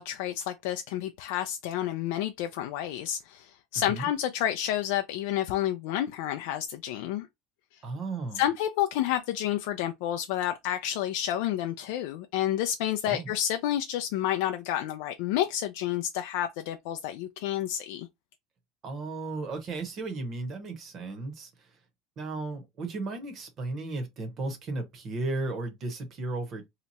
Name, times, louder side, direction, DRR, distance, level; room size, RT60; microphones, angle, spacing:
voice 1, 0.0-7.3 7.7-7.8 8.3-18.1, left 12 dB, 70° left, 0.3 m, -30 dB
voice 2, 3.8-4.1 7.8-8.4 13.1-13.3 18.8-21.5 22.2-26.7, right 3 dB, 30° right, 0.9 m, -35 dB
2.9 x 2.2 x 4.0 m
cardioid pair, 170°, 0 cm